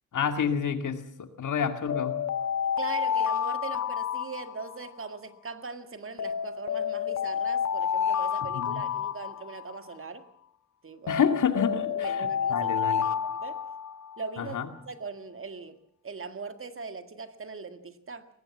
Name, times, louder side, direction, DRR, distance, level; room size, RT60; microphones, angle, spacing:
voice 1, 0.1-2.2 8.5-8.8 11.1-13.1 14.4-14.7, left 7 dB, 80° left, 8 dB, 2.3 m, -29 dB
sound 1, 1.9-5.1 6.2-9.9 11.1-14.3, left 8 dB, 65° left, 0.8 m, -30 dB
voice 2, 2.8-10.2 10.8-11.2 11.9-13.6 14.2-15.8 16.0-18.3, right 4 dB, 45° right, 9 dB, 1.9 m, -40 dB
22.5 x 19.0 x 7.3 m, 0.67 s
wide cardioid pair, 115°, 30 cm